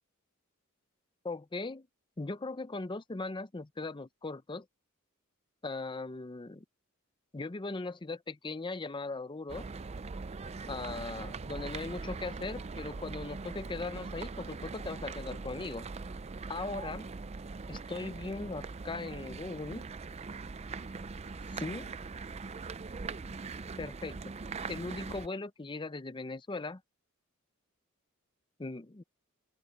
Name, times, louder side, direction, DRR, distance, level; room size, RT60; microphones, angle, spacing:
voice 1, 1.2-1.9 2.2-4.7 5.6-6.6 7.3-9.7 10.7-15.9 16.5-17.0 17.7-19.8 21.5-21.9 23.8-24.3 24.7-26.8 28.6-29.0, left 3 dB, 20° left, 0.6 m, -39 dB
sound 1, 9.5-25.3, right 4 dB, 30° right, 0.5 m, -41 dB
open air
head